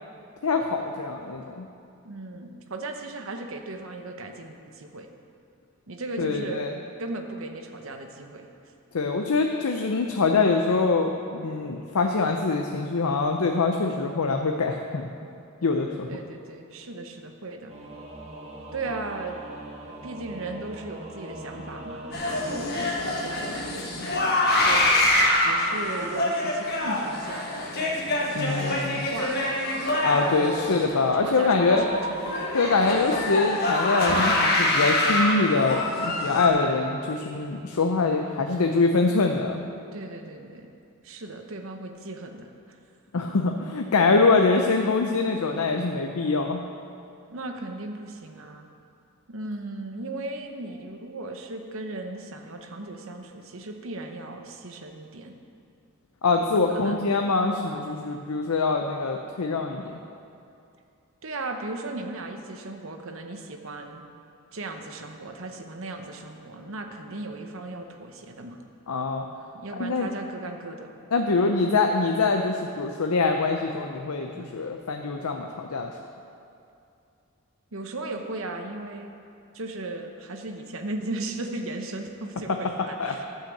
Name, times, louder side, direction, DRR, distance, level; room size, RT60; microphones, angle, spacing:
voice 1, 0.4-1.7 6.2-6.7 8.9-15.1 15.6-16.1 28.3-29.0 30.0-31.8 32.5-39.6 43.1-46.6 56.2-59.8 68.9-69.2 69.8-70.1 71.1-75.9 83.0-83.2, left 3 dB, 85° left, 4 dB, 0.6 m, -24 dB
voice 2, 2.0-5.1 5.9-6.6 7.0-8.5 16.1-17.7 18.7-19.4 19.9-25.0 25.4-27.5 28.5-29.5 30.1-30.9 31.1-32.5 36.4-36.7 39.9-40.7 41.0-42.5 47.3-48.7 49.3-55.3 56.6-57.1 61.2-64.0 64.5-68.6 69.5-70.9 74.3-74.6 77.7-79.1 79.5-83.2, right 2 dB, 65° right, 4 dB, 1.0 m, -37 dB
Singing / Musical instrument, 17.7-22.7, right 1 dB, 30° right, 1.0 m, -41 dB
sound 1, 22.1-36.5, left 1 dB, 45° left, 1.4 m, -25 dB
11.5 x 5.7 x 7.2 m, 2.6 s
head